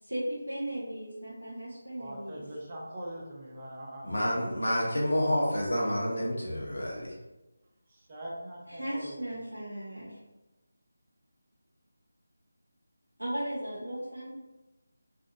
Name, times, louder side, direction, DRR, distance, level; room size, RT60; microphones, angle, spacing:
voice 1, 0.0-2.4 8.7-10.2 13.2-14.3, right 1 dB, 85° right, 0.7 m, -36 dB
voice 2, 2.0-4.3 7.9-9.2, right 1 dB, 25° right, 0.6 m, -42 dB
voice 3, 4.0-7.1, equal, 70° left, 0.7 m, -29 dB
2.6 x 2.1 x 2.6 m
figure-of-eight pair, 160°, 0 cm